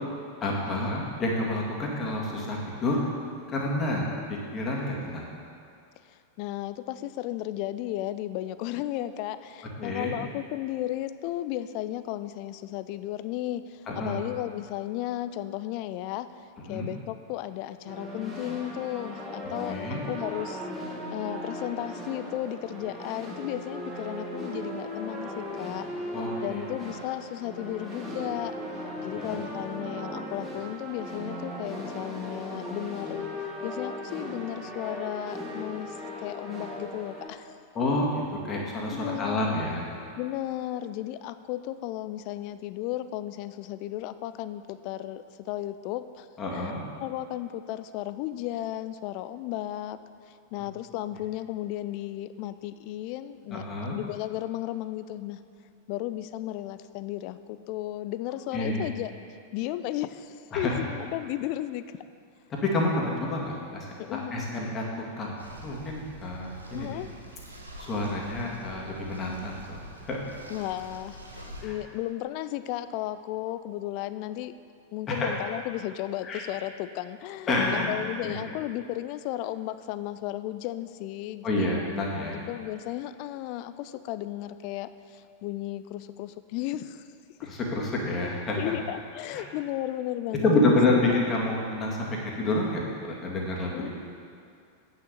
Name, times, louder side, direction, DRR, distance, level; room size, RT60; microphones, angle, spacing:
voice 1, 0.4-3.0 3.5-5.3 9.8-10.1 13.9-14.2 16.7-16.9 19.7-20.0 26.1-26.7 37.7-39.9 46.4-46.8 53.5-54.0 58.5-58.9 60.5-60.8 62.6-64.8 65.2-65.4 65.6-67.0 67.8-70.2 71.6-71.8 75.1-75.3 76.2-76.4 77.5-77.9 78.2-78.3 81.4-82.4 87.4-88.7 89.3-89.5 90.4-93.9, left 2 dB, 25° left, -2 dB, 2.0 m, -28 dB
voice 2, 6.0-16.3 16.7-26.2 26.4-28.5 29.0-33.3 33.6-36.0 36.2-37.6 38.4-39.7 40.2-46.3 46.5-50.0 50.3-55.4 55.9-59.1 59.5-61.8 64.0-64.5 66.7-67.1 70.5-74.5 74.9-81.7 82.5-87.0 88.6-90.6 91.1-91.2 93.7-93.9, left 14 dB, 45° left, 13 dB, 0.4 m, -34 dB
sound 1, 17.9-37.3, equal, 10° right, 2.0 m, -37 dB
sound 2, 65.4-71.6, right 1 dB, 80° right, 1.1 m, -45 dB
8.8 x 6.4 x 6.9 m, 2.4 s
figure-of-eight pair, 90°, 0 cm